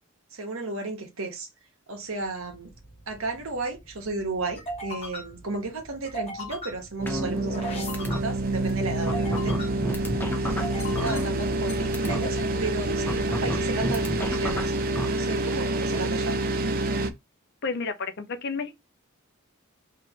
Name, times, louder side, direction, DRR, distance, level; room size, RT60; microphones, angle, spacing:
voice 1, 0.3-1.5 1.9-2.7 3.1-9.5 10.4-14.7 15.0-16.4, right 3 dB, 80° right, 1.3 m, -34 dB
sound 1, 2.2-15.0, equal, 30° left, 1.5 m, -39 dB
sound 2, 7.0-17.1, right 2 dB, 45° right, 0.5 m, -27 dB
sound 3, 7.1-7.7 7.9-8.2 8.7-8.8 9.1-11.7 11.9-12.2 13.1-15.0, equal, 10° left, 0.7 m, -31 dB
voice 2, 17.6-18.8, left 4 dB, 55° left, 0.6 m, -31 dB
3.2 x 3.1 x 4.0 m
head